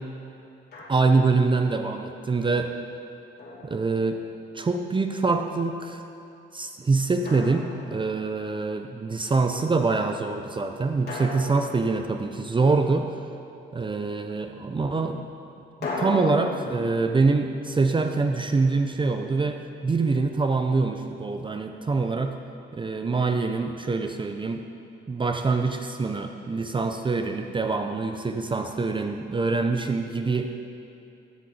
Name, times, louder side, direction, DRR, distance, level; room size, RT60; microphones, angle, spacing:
Drum, 0.7-1.4 3.4-4.5 7.2-8.4 11.1-12.7 15.8-18.8, left 2 dB, 55° left, 2.6 m, -37 dB
voice 1, 0.9-2.7 3.6-4.2 4.5-6.0 6.5-13.1 13.7-15.3 15.8-22.4 22.7-24.7 25.1-30.6, right 3 dB, 25° right, 5 dB, 0.6 m, -25 dB
14.5 x 7.5 x 4.1 m, 2.7 s
cardioid pair, 90°, 20 cm